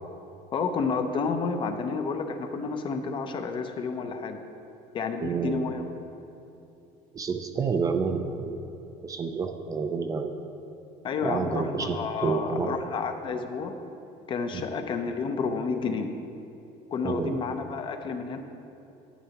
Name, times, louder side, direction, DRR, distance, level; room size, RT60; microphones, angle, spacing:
voice 1, 0.5-4.4 4.9-5.8 11.0-13.8 14.3-16.1 16.9-18.4, left 4 dB, 35° left, 7 dB, 0.6 m, -30 dB
voice 2, 5.2-5.7 7.1-8.6 9.0-10.3 11.2-12.7 14.5-14.7 17.0-17.4, right 5 dB, 25° right, 6 dB, 0.4 m, -29 dB
11.0 x 9.1 x 2.9 m, 2.9 s
cardioid pair, 150°, 15 cm